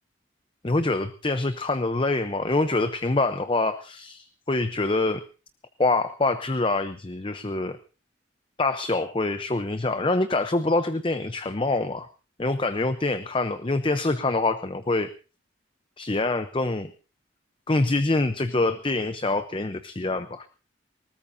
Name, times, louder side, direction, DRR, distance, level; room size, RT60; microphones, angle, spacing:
voice 1, 0.6-5.2 5.8-7.8 8.6-12.1 12.4-15.1 16.0-16.9 17.7-20.5, left 2 dB, 25° left, 11 dB, 0.6 m, -25 dB
20.5 x 19.0 x 2.7 m, 0.34 s
head